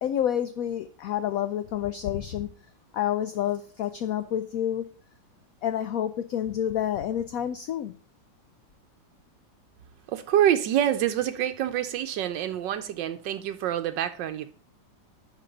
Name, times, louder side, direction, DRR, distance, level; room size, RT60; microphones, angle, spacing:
voice 1, 0.0-2.5 2.9-4.9 5.6-7.9, left 10 dB, 70° left, 0.8 m, -28 dB
voice 2, 10.1-14.5, right 11 dB, 80° right, 1.3 m, -26 dB
11.5 x 4.3 x 5.2 m
omnidirectional pair, 2.0 m